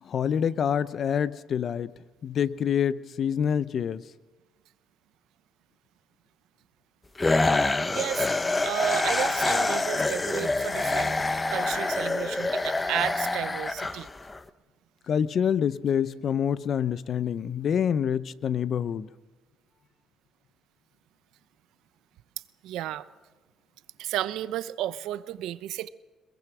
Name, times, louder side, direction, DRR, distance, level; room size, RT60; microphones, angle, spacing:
voice 1, 0.0-1.9 2.2-4.0 15.1-19.1, left 8 dB, 55° left, 16 dB, 0.8 m, -26 dB
sound 1, 7.2-14.4, left 2 dB, 20° left, 0.9 m, -26 dB
voice 2, 7.5-11.1 11.5-14.1 22.6-23.1 24.0-25.9, right 13 dB, 80° right, 15 dB, 0.7 m, -33 dB
22.0 x 21.5 x 6.2 m, 1.3 s
supercardioid pair, 80°, 0 cm